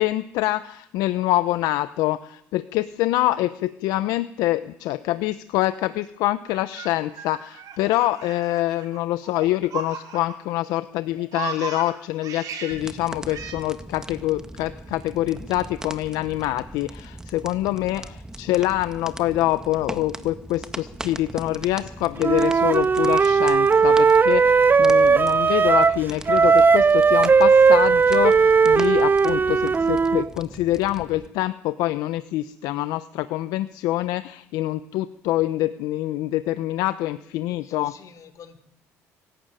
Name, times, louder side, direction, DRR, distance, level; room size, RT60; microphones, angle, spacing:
voice 1, 0.0-37.9, left 16 dB, 85° left, 13 dB, 0.8 m, -25 dB
Laughter, 6.5-10.6 10.9-12.8 13.3-13.5, right 6 dB, 70° right, 5.5 m, -36 dB
sound 1, 12.7-31.3, right 1 dB, 10° right, 1.8 m, -39 dB
voice 2, 17.6-18.2 37.5-38.6, left 6 dB, 60° left, 10 dB, 3.8 m, -48 dB
Wind instrument woodwind instrument, 22.2-26.0 26.3-30.3, right 5 dB, 30° right, 0.7 m, -17 dB
24.5 x 12.0 x 9.0 m, 0.74 s
supercardioid pair, 75°, 6 cm